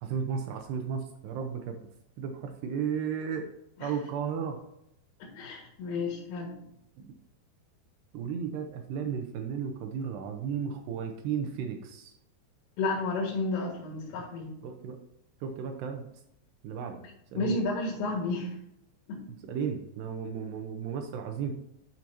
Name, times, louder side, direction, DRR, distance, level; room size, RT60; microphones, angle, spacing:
voice 1, 0.0-1.8 2.2-3.5 3.8-4.6 7.0-7.1 8.1-12.1 14.6-15.0 15.4-16.1 16.6-17.0 17.3-17.6 19.5-21.5, right 7 dB, 80° right, 4 dB, 2.5 m, -34 dB
voice 2, 5.2-6.5 12.8-14.5 17.4-18.5 19.1-19.2, left 3 dB, 85° left, -4 dB, 4.4 m, -31 dB
12.0 x 6.2 x 2.8 m, 0.79 s
omnidirectional pair, 5.6 m